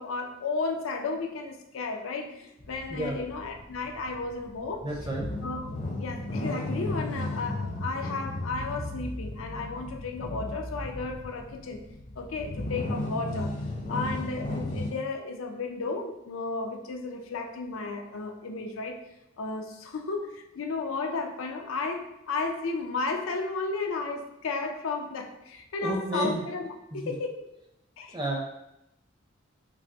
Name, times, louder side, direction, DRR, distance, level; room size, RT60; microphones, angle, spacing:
voice 1, 0.0-4.9 5.4-11.8 12.2-13.6 13.9-19.0 19.4-26.7 26.9-27.4 28.0-28.2, left 3 dB, 90° left, 3 dB, 0.5 m, -33 dB
sound 1, 2.6-14.9, left 1 dB, 40° left, 0.5 m, -35 dB
voice 2, 4.8-5.2 25.8-26.4 26.9-27.1 28.1-28.4, right 1 dB, 25° right, -1 dB, 0.6 m, -31 dB
5.2 x 2.0 x 2.9 m, 0.86 s
head